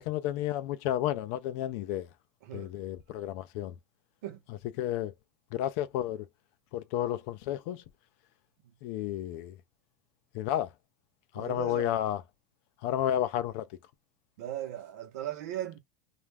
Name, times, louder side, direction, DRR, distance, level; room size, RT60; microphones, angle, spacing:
voice 1, 0.0-2.1 2.5-3.7 4.8-5.1 5.5-6.2 6.7-7.8 8.8-9.5 10.3-10.7 11.4-12.2 12.8-13.6, left 12 dB, 40° left, 0.3 m, -31 dB
voice 2, 11.4-12.0 14.4-15.8, right 11 dB, 60° right, 0.8 m, -38 dB
2.3 x 2.1 x 3.2 m
supercardioid pair, 180°, 10 cm